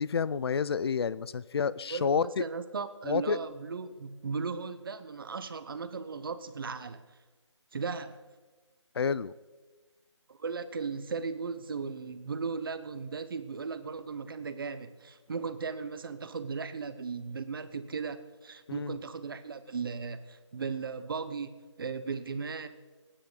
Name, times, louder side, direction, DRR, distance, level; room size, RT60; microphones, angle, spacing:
voice 1, 0.0-2.4 3.1-3.4 9.0-9.3 18.7-19.0, left 6 dB, 55° left, 18 dB, 0.4 m, -29 dB
voice 2, 1.9-7.0 7.7-8.2 10.3-22.7, right 5 dB, 45° right, 12 dB, 0.9 m, -37 dB
25.0 x 9.9 x 3.9 m, 1.3 s
figure-of-eight pair, 165°, 16 cm